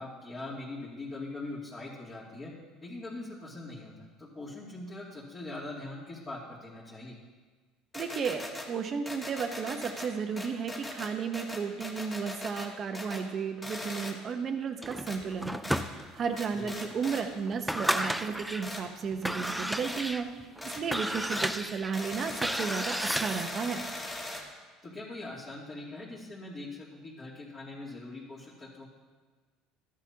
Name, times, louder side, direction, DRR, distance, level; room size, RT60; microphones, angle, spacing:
voice 1, 0.0-2.5 2.8-7.2 16.5-16.7 24.8-28.9, left 2 dB, 30° left, -10 dB, 2.6 m, -42 dB
sound 1, 7.9-8.7 9.1-10.1 10.4-12.7 12.9-13.3 13.6-14.1 15.1-15.2 15.6-15.8 16.4-17.2 17.8-18.0 18.6-18.8 19.4-19.5 19.8-20.0 20.6-20.8 21.3-21.5 21.9-24.4, left 1 dB, 15° left, 1.9 m, -40 dB
voice 2, 7.9-20.3 20.6-23.8, right 6 dB, 40° right, 6 dB, 1.0 m, -34 dB
sound 2, 14.8-16.4 16.9-17.0 17.5-18.7 19.1-23.7, equal, ahead, 0.4 m, -33 dB
13.5 x 10.5 x 2.9 m, 1.4 s
supercardioid pair, 110°, 0 cm